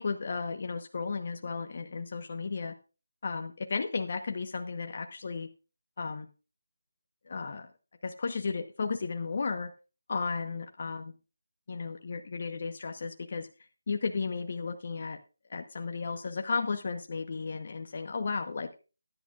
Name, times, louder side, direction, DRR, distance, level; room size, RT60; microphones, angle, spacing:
voice 1, 0.0-2.7 3.2-5.5 6.0-6.3 7.3-7.7 8.0-9.7 10.1-11.1 11.7-13.5 13.9-15.2 15.5-18.7, left 4 dB, 45° left, 6 dB, 1.0 m, -34 dB
15.0 x 11.0 x 2.4 m, 0.33 s
figure-of-eight pair, 160°, 0 cm